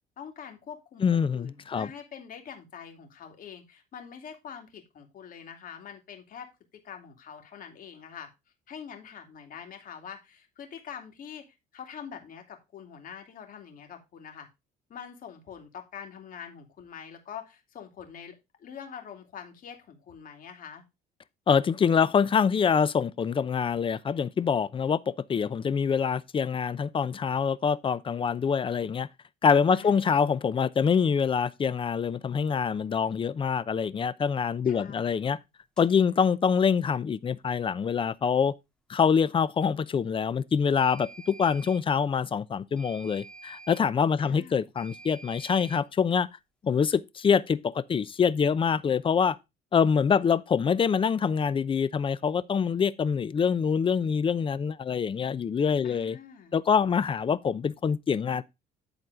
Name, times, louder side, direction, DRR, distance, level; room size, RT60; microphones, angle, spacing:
voice 1, 0.2-6.5 6.7-8.3 8.7-11.4 11.7-14.5 14.9-20.8 29.7-30.1 34.7-35.1 44.2-44.7 55.8-56.5, left 7 dB, 55° left, 2.6 m, -44 dB
voice 2, 1.0-1.9 21.5-29.1 29.4-35.4 35.8-38.5 38.9-46.3 46.6-49.4 49.7-56.2 56.5-58.4, left 6 dB, 30° left, 0.6 m, -25 dB
sound 1, 35.8-35.9 40.8-41.9 42.8-43.9 44.8-45.9, right 3 dB, 5° left, 1.8 m, -48 dB
11.0 x 4.2 x 4.8 m
cardioid pair, 110°, 17 cm